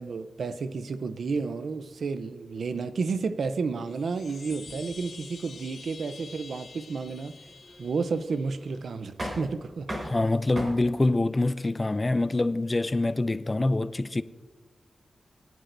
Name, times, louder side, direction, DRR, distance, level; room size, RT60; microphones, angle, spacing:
voice 1, 0.0-7.3 7.8-9.9, right 4 dB, 85° right, 0.6 m, -31 dB
sound 1, 3.8-8.9, left 4 dB, 55° left, 0.7 m, -48 dB
sound 2, 4.2-10.6, equal, 35° right, 4.2 m, -41 dB
voice 2, 10.0-14.2, left 2 dB, 25° left, 0.4 m, -25 dB
22.5 x 10.5 x 2.6 m
wide cardioid pair, 105°, 0 cm